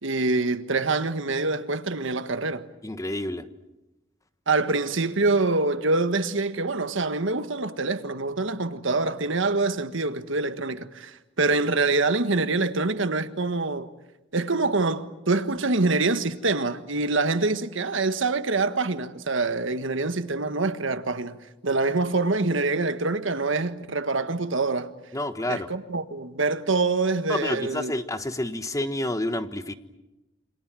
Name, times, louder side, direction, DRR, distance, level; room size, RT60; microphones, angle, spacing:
voice 1, 0.0-2.7 4.5-13.9 14.3-21.4 21.6-24.9 25.5-27.9, right 3 dB, 70° right, 1.5 m, -25 dB
voice 2, 2.8-3.4 25.1-25.7 27.3-29.8, left 1 dB, 15° left, 1.3 m, -29 dB
28.5 x 26.0 x 7.6 m
head